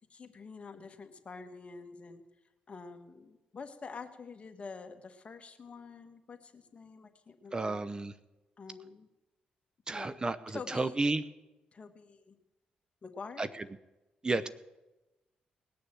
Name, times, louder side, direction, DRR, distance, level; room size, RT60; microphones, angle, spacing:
voice 1, 0.1-2.2 2.7-7.9 8.6-9.1 9.9-10.1 10.5-11.0 11.7-12.4 13.0-13.6 14.3-14.5, left 4 dB, 40° left, 7 dB, 1.6 m, -47 dB
voice 2, 7.5-8.1 9.9-11.2 13.4-13.5 14.2-14.5, right 2 dB, 25° right, 14 dB, 0.7 m, -32 dB
20.0 x 6.8 x 7.8 m, 1.0 s
cardioid pair, 75°, 3 cm